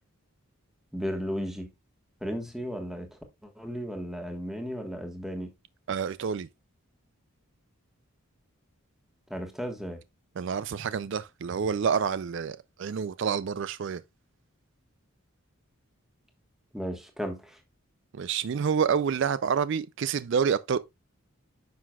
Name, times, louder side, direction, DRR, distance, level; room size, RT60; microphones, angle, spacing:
voice 1, 0.9-1.7 2.2-5.5 9.3-10.0 16.7-17.6, equal, ahead, 1.3 m, -35 dB
voice 2, 5.9-6.5 10.4-14.0 18.1-20.8, right 6 dB, 55° right, 0.3 m, -28 dB
9.5 x 5.8 x 2.3 m
head